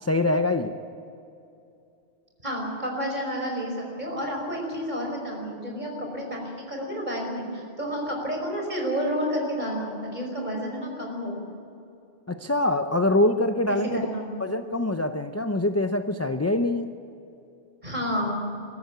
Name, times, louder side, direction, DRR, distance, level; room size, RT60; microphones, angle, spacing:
voice 1, 0.0-0.8 12.3-14.0 14.4-16.9, left 2 dB, 20° left, 7 dB, 0.5 m, -24 dB
voice 2, 2.4-11.4 13.7-14.3 17.8-18.4, equal, 40° right, 0 dB, 5.4 m, -30 dB
23.0 x 13.5 x 9.4 m, 2.6 s
omnidirectional pair, 1.2 m